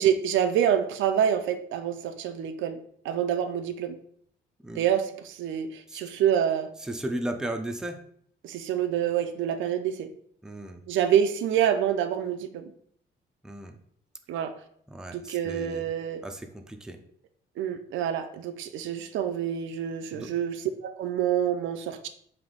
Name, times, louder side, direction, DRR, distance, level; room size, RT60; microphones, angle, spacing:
voice 1, 0.0-2.8 3.0-4.0 4.7-6.7 8.4-10.1 10.9-12.6 14.3-14.5 15.1-16.2 17.6-22.1, right 9 dB, 80° right, 8 dB, 0.4 m, -27 dB
voice 2, 6.8-8.0 10.4-10.8 13.4-13.8 14.9-15.9 16.2-17.0 20.1-20.3, right 1 dB, 5° right, 5 dB, 0.4 m, -35 dB
3.4 x 2.6 x 3.8 m, 0.65 s
cardioid pair, 90°, 20 cm